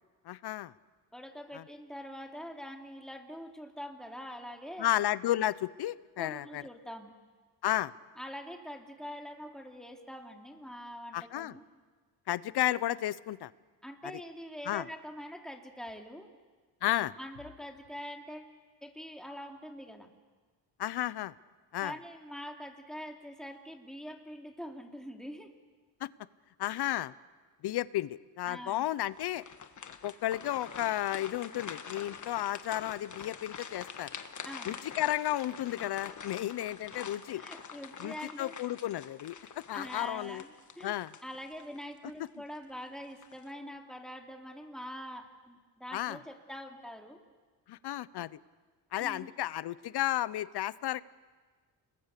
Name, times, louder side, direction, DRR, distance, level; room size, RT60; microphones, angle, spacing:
voice 1, 0.3-0.7 1.5-1.6 4.8-6.6 7.6-7.9 11.1-11.5 12.3-13.5 14.0-14.2 14.7-14.9 16.8-17.1 20.8-21.3 21.7-21.9 26.0-26.1 26.6-27.1 27.6-29.4 30.0-34.1 34.7-37.4 38.0-39.4 39.7-40.4 40.8-41.1 45.9-46.2 47.7-48.3 48.9-51.0, left 13 dB, 65° left, 19 dB, 0.8 m, -33 dB
voice 2, 1.1-4.9 6.2-7.1 8.2-11.6 13.8-16.3 17.2-18.5 18.8-20.1 21.8-25.5 28.5-28.9 34.4-34.7 37.3-38.5 39.7-40.9 41.2-47.2 49.0-49.3, equal, ahead, 2 dB, 3.0 m, -44 dB
sound 1, 29.1-41.8 42.2-42.4 43.0-43.5, left 6 dB, 45° left, 1.6 m, -46 dB
30.0 x 21.5 x 6.7 m, 1.4 s
cardioid pair, 85°, 42 cm